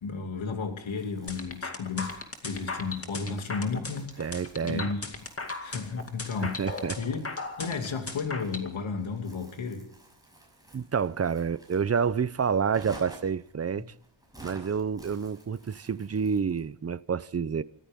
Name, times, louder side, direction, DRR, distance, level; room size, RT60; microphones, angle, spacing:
voice 1, 0.0-4.3 4.6-5.1 5.6-7.2 7.6-9.9 13.8-13.9, left 5 dB, 80° left, 2.7 m, -33 dB
Crumpling crinkling, 0.9-16.7, right 1 dB, 10° right, 6.3 m, -53 dB
sound 1, 1.3-8.7, left 3 dB, 30° left, 2.3 m, -37 dB
voice 2, 4.2-4.9 6.6-7.0 10.7-13.9 14.4-17.6, right 6 dB, 30° right, 0.6 m, -28 dB
26.0 x 14.0 x 3.7 m
wide cardioid pair, 95°, 46 cm